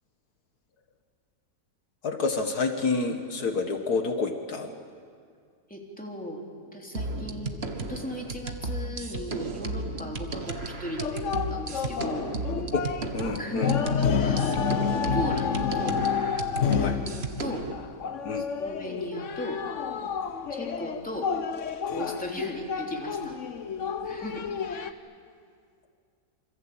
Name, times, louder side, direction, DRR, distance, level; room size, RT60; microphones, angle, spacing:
voice 1, 2.0-4.7 12.7-12.9 13.1-13.7 16.8-17.0 18.2-18.5, left 4 dB, 70° left, 6 dB, 2.0 m, -28 dB
voice 2, 5.7-6.4 6.7-12.3 13.4-16.0 16.8-17.7 18.4-19.6 20.5-21.3 21.9-23.3 24.0-24.9, equal, 5° left, 0 dB, 3.4 m, -37 dB
sound 1, 6.9-17.7, right 2 dB, 40° right, 1.7 m, -34 dB
sound 2, 10.5-24.9, left 7 dB, 50° left, 1.3 m, -30 dB
27.0 x 25.0 x 8.7 m, 2.2 s
omnidirectional pair, 1.7 m